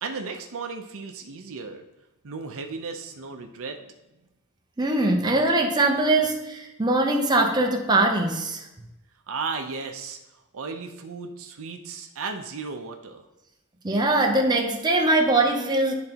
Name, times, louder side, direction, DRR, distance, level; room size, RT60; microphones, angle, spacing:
voice 1, 0.0-1.8 2.2-3.8 9.3-10.2 10.5-13.2, right 4 dB, 65° right, 5 dB, 0.6 m, -35 dB
voice 2, 4.8-8.7 13.8-15.9, right 2 dB, 20° right, 2 dB, 0.7 m, -22 dB
10.5 x 3.9 x 2.9 m, 0.98 s
head